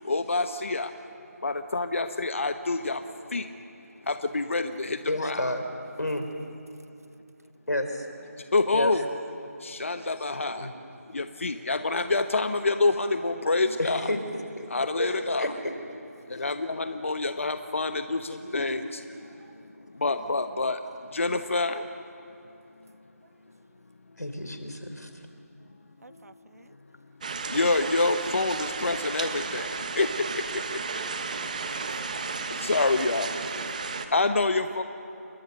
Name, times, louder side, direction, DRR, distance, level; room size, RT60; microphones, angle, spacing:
voice 1, 0.0-0.9 1.4-3.0 3.3-3.4 4.1-5.5 8.5-9.0 9.6-10.7 11.1-14.1 14.7-15.4 16.3-18.8 20.0-20.8 21.1-21.8 27.5-30.1 32.6-33.3 34.1-34.8, left 3 dB, 50° left, 9 dB, 1.0 m, -27 dB
voice 2, 5.1-5.6 6.0-6.3 7.7-8.0 8.7-8.9 10.5-10.7 13.8-14.2 14.6-15.5 18.5-18.6 24.2-25.1, left 1 dB, 85° left, 6 dB, 3.8 m, -30 dB
voice 3, 26.0-26.7 31.6-32.7 33.8-34.1, right 2 dB, 70° right, 16 dB, 0.9 m, -51 dB
sound 1, 27.2-34.1, right 4 dB, 25° right, 1.1 m, -33 dB
28.5 x 22.0 x 6.7 m, 2.9 s
figure-of-eight pair, 165°, 9 cm